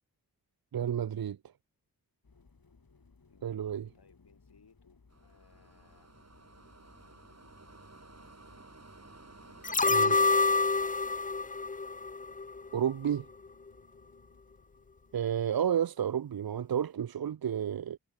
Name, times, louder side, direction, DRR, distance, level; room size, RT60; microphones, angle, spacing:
voice 1, 0.7-1.4 3.4-3.9 9.9-10.2 12.7-13.3 15.1-18.0, right 9 dB, 65° right, 0.7 m, -31 dB
sound 1, 2.2-15.5, left 4 dB, 65° left, 4.7 m, -63 dB
voice 2, 3.3-6.1 9.4-10.3, left 5 dB, 85° left, 5.8 m, -64 dB
sound 2, 5.1-10.2, right 2 dB, 40° right, 7.3 m, -54 dB
sound 3, 9.6-12.8 13.1-13.2, left 4 dB, 20° left, 0.6 m, -27 dB
cardioid pair, 40°, 38 cm